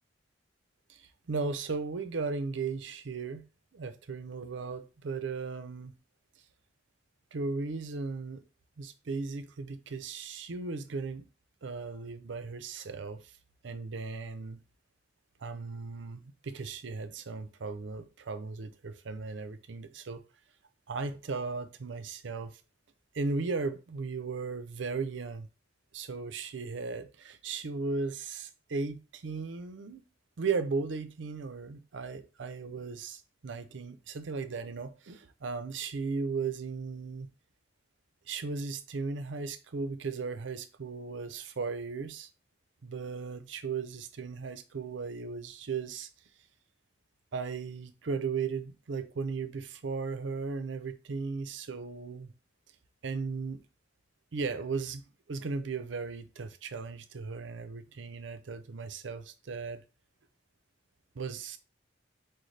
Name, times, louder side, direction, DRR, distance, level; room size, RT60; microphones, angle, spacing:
voice 1, 0.9-3.4 3.7-6.0 7.3-8.4 8.8-11.2 11.6-13.3 13.6-14.6 15.4-20.2 20.9-22.6 23.1-25.5 25.9-30.0 30.4-37.3 38.3-42.3 42.8-46.1 47.3-52.3 53.0-53.6 54.3-55.0 55.3-59.8 61.1-61.6, right 4 dB, 85° right, 0.6 m, -36 dB
6.4 x 2.2 x 3.2 m
head